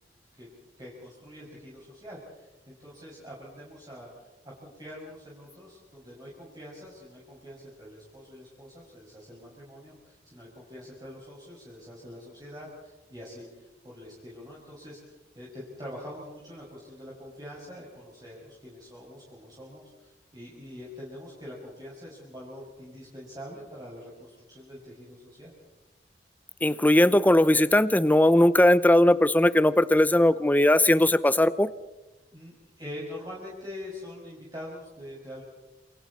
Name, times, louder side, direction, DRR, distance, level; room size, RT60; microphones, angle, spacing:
voice 1, 0.8-4.3 4.6-25.5 32.3-35.4, left 1 dB, 25° right, -6 dB, 6.0 m, -44 dB
voice 2, 26.6-31.7, left 1 dB, 10° left, 14 dB, 0.7 m, -19 dB
29.0 x 28.0 x 4.2 m, 1.0 s
head